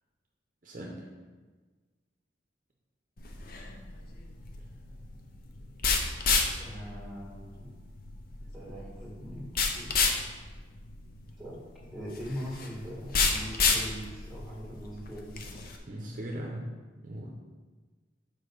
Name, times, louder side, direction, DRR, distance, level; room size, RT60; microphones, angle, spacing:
voice 1, 0.6-1.0 6.1-6.2 6.7-6.8 15.9-16.6 17.0-17.3, right 1 dB, 45° right, -1 dB, 0.7 m, -39 dB
sound 1, 3.2-15.8, left 4 dB, 50° left, 0.7 m, -31 dB
voice 2, 6.6-7.7 8.5-10.0 11.4-15.6, equal, ahead, -5 dB, 1.8 m, -42 dB
5.1 x 4.5 x 6.0 m, 1.4 s
head